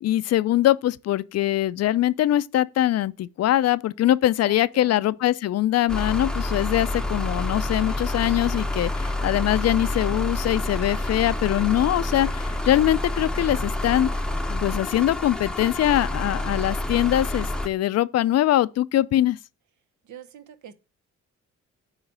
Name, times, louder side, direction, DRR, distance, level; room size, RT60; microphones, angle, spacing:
voice 1, 0.0-14.1 14.5-19.4, left 13 dB, 55° left, 0.5 m, -22 dB
voice 2, 4.4-5.2 20.0-20.7, right 7 dB, 70° right, 0.9 m, -44 dB
Diesel In Trouble, 5.9-17.7, left 1 dB, ahead, 0.7 m, -28 dB
8.9 x 3.2 x 6.0 m
cardioid pair, 90°, 30 cm